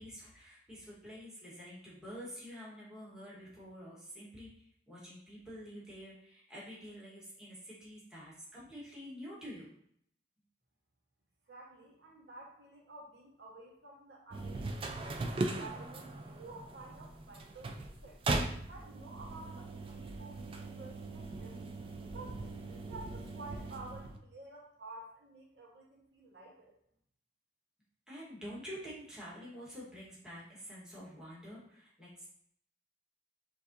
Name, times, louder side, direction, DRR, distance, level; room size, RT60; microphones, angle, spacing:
voice 1, 0.0-9.8 28.1-32.3, equal, 5° right, -8 dB, 1.3 m, -48 dB
voice 2, 11.5-15.0 15.4-18.2 18.7-21.6 22.0-26.7, right 2 dB, 70° right, -3 dB, 1.2 m, -51 dB
sound 1, 14.3-24.2, right 2 dB, 30° right, 0.3 m, -39 dB
6.5 x 2.7 x 2.6 m, 0.68 s
head